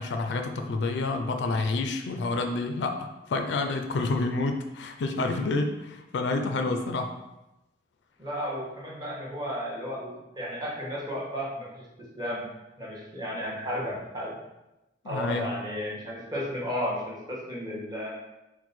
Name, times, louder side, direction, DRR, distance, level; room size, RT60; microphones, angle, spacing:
voice 1, 0.0-7.2 15.0-15.5, left 3 dB, 65° left, 5 dB, 0.4 m, -29 dB
voice 2, 8.2-11.8 12.2-12.5 12.8-14.4 15.0-18.1, equal, 20° right, -5 dB, 1.1 m, -33 dB
4.5 x 2.2 x 4.1 m, 0.96 s
head